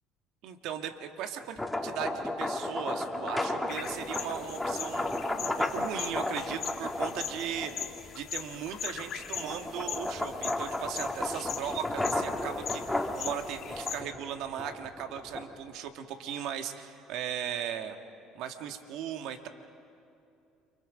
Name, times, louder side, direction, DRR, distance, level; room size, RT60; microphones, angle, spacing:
voice 1, 0.4-5.0 5.6-7.7 8.1-18.0 18.3-19.5, right 9 dB, 70° right, 6 dB, 1.6 m, -37 dB
sound 1, 1.4-8.0 8.5-15.7, left 1 dB, 5° left, 2.4 m, -34 dB
sound 2, 3.7-14.0, left 8 dB, 50° left, 1.6 m, -41 dB
29.5 x 25.0 x 5.2 m, 2.6 s
supercardioid pair, 85°, 0 cm